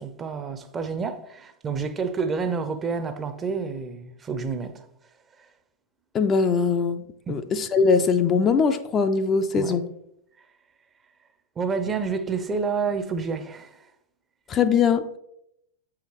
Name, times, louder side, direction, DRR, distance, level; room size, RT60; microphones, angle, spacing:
voice 1, 0.0-4.8 7.3-7.4 9.5-9.8 11.6-13.8, right 5 dB, 20° right, 0.6 m, -29 dB
voice 2, 6.1-9.9 14.5-15.2, left 5 dB, 25° left, 0.4 m, -21 dB
8.0 x 4.9 x 3.0 m
figure-of-eight pair, 95°, 0 cm